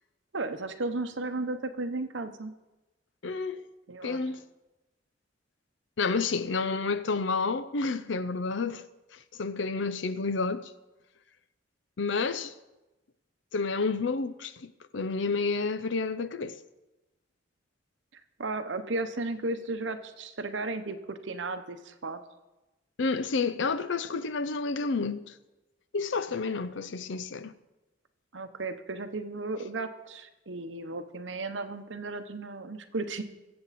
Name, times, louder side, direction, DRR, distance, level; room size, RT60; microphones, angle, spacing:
voice 1, 0.3-2.5 3.9-4.2 18.4-22.2 28.3-33.2, right 2 dB, 75° right, 1.0 m, -34 dB
voice 2, 3.2-3.6 4.0-4.4 6.0-8.8 9.4-10.7 12.0-12.5 13.5-16.6 23.0-25.3 25.9-27.5, left 4 dB, 75° left, 0.6 m, -30 dB
23.0 x 7.9 x 4.2 m
head